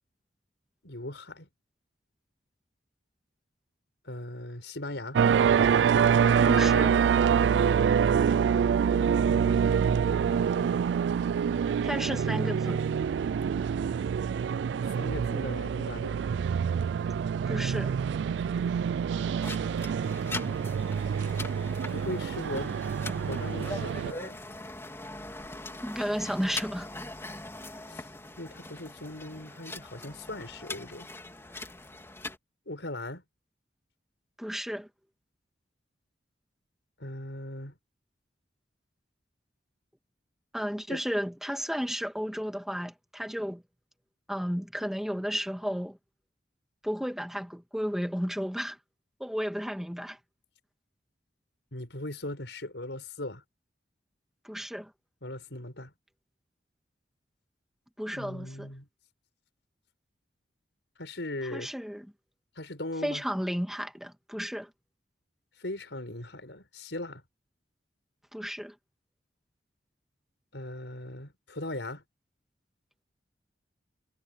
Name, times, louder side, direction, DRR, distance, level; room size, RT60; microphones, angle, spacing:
voice 1, 0.8-1.5 4.0-5.2 8.9-9.8 15.0-16.2 20.4-20.8 21.9-22.7 23.3-24.4 27.9-28.1 28.4-31.1 32.6-33.2 37.0-37.7 40.9-41.0 51.7-53.4 55.2-55.9 58.1-58.9 61.0-61.7 62.5-63.2 65.6-67.2 70.5-72.0, left 1 dB, 85° left, 5.0 m, -39 dB
sound 1, 5.1-24.1, right 7 dB, 80° right, 0.3 m, -26 dB
voice 2, 6.5-7.0 11.8-12.8 17.5-17.9 25.8-26.9 34.4-34.9 40.5-43.6 44.3-46.0 46.8-48.8 49.2-50.2 54.4-54.9 58.0-58.7 61.5-62.1 63.0-64.7 68.3-68.7, equal, ahead, 2.1 m, -33 dB
sound 2, 19.4-32.4, left 2 dB, 15° left, 3.5 m, -41 dB
head